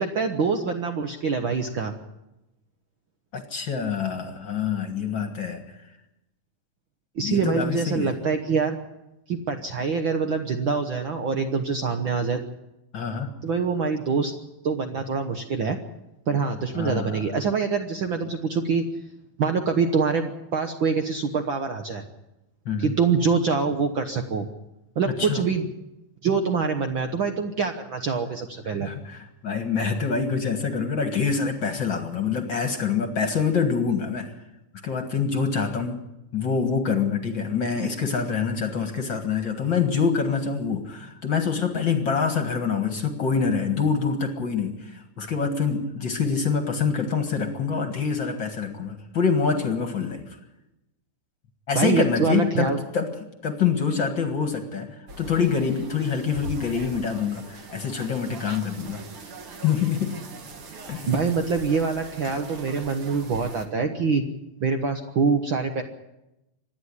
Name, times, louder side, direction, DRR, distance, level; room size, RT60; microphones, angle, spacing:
voice 1, 0.0-1.9 7.1-8.8 9.3-12.4 13.4-14.3 14.6-15.8 16.3-18.8 19.4-22.0 22.8-24.5 24.9-25.7 26.2-28.9 51.7-52.8 61.1-64.2 64.6-65.8, right 5 dB, 85° right, 5 dB, 1.1 m, -25 dB
voice 2, 3.3-5.6 7.2-8.1 12.9-13.3 16.7-17.2 22.7-22.9 25.1-25.4 28.7-34.3 34.8-36.0 36.3-50.4 51.7-53.1 53.4-59.0 59.6-60.2 60.9-61.1, left 6 dB, 45° left, 6 dB, 1.8 m, -26 dB
sound 1, 55.1-63.7, right 2 dB, 45° right, 2.3 m, -41 dB
25.5 x 10.5 x 9.8 m, 0.94 s
omnidirectional pair, 4.0 m